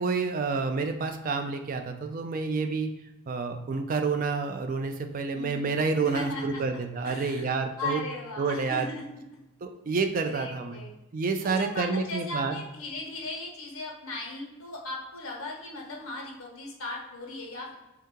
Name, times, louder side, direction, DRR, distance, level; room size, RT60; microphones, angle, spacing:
voice 1, 0.0-2.9 3.3-8.0 8.4-8.9 9.6-10.8 11.1-12.6, right 4 dB, 40° right, 6 dB, 0.3 m, -29 dB
voice 2, 5.3-5.7 6.0-6.6 7.0-9.2 10.3-10.9 11.4-17.7, left 2 dB, 75° left, -1 dB, 1.0 m, -37 dB
3.7 x 2.8 x 3.5 m, 0.99 s
head